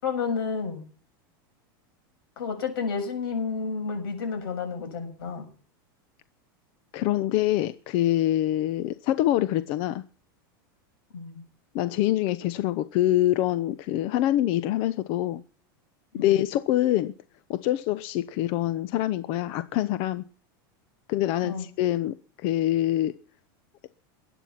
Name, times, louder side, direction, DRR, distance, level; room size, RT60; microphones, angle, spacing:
voice 1, 0.0-0.8 2.4-5.5 11.1-11.4 16.1-16.3 21.4-21.7, left 5 dB, 90° left, 6 dB, 7.3 m, -30 dB
voice 2, 6.9-10.0 11.7-15.4 16.2-17.1 17.5-20.2 21.1-23.1, left 13 dB, 50° left, 14 dB, 0.9 m, -25 dB
21.5 x 9.2 x 5.9 m, 0.41 s
supercardioid pair, 130°, 12 cm